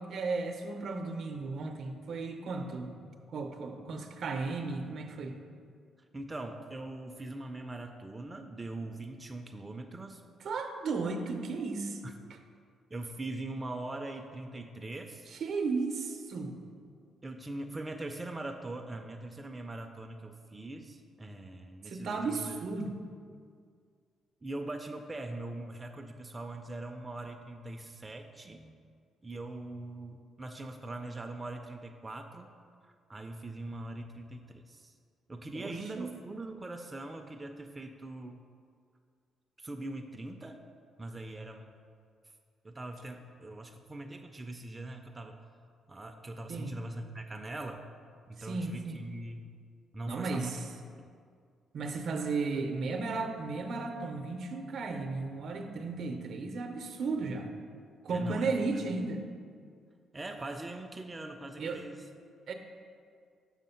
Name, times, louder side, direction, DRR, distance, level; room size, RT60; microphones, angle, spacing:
voice 1, 0.0-2.9 3.3-5.4 10.4-12.0 15.3-16.6 21.8-23.0 35.5-36.2 46.5-46.8 48.4-49.0 50.1-50.7 51.7-57.5 58.0-59.2 61.6-61.8 62.5-62.6, right 3 dB, 65° right, 5 dB, 0.6 m, -34 dB
voice 2, 6.1-10.2 12.0-12.1 12.9-15.3 17.2-22.6 24.4-28.7 29.2-32.5 33.1-34.9 35.3-38.4 39.6-40.6 41.0-41.7 42.6-45.4 45.9-47.9 48.3-49.5 49.9-50.6 51.0-51.1 58.1-58.5 60.1-62.1, right 2 dB, 20° right, 4 dB, 0.4 m, -41 dB
6.3 x 3.6 x 5.6 m, 2.2 s
cardioid pair, 90°, 0 cm